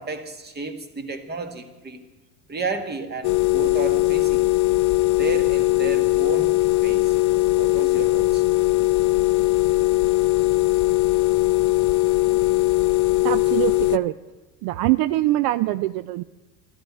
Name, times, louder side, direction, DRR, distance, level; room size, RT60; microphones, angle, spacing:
voice 1, 0.0-2.0 2.5-4.5 5.2-7.1 7.6-8.4, right 3 dB, 25° right, 1.5 m, -32 dB
sound 1, 3.2-14.0, left 18 dB, 45° left, 0.4 m, -20 dB
voice 2, 13.2-14.2 14.6-16.2, right 16 dB, 60° right, 0.5 m, -23 dB
13.5 x 11.0 x 9.4 m
cardioid pair, 130°, 43 cm